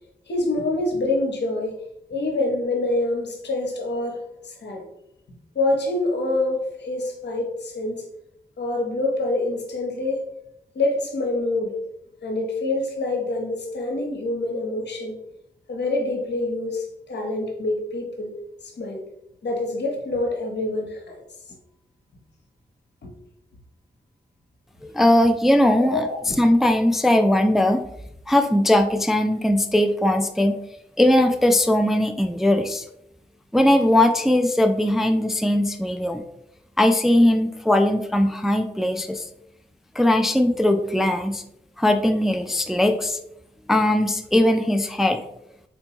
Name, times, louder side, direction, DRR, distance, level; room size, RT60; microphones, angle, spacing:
voice 1, 0.3-1.8 2.1-4.8 5.5-8.0 8.6-10.2 10.7-11.8 12.2-15.2 15.7-18.3 18.6-19.0 19.4-21.2 23.0-23.1 25.8-26.2, left 2 dB, 75° left, 1 dB, 0.9 m, -26 dB
voice 2, 24.9-26.1 26.4-27.8 28.3-30.6 31.0-32.9 33.5-36.2 36.8-39.3 40.0-41.4 41.8-43.2 43.7-45.2, left 1 dB, ahead, 6 dB, 0.3 m, -19 dB
4.2 x 2.2 x 2.9 m, 0.80 s
cardioid pair, 45°, 18 cm